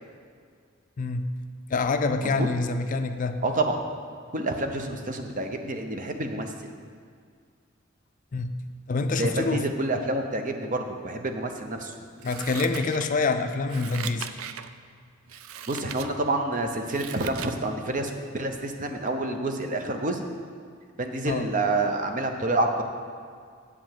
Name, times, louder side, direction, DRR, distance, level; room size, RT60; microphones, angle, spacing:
voice 1, 1.7-3.4 8.3-8.5 8.9-9.7 12.2-14.3 21.3-21.5, left 3 dB, 40° left, 8 dB, 0.4 m, -26 dB
voice 2, 3.4-3.8 4.3-6.5 9.2-11.9 15.7-20.2 21.0-22.8, right 2 dB, 40° right, 5 dB, 0.7 m, -28 dB
Scissors, 12.2-13.3 13.7-14.7 15.3-16.1 16.5-17.6 18.0-18.1, right 9 dB, 85° right, 0.4 m, -38 dB
8.4 x 5.0 x 7.5 m, 2.1 s
head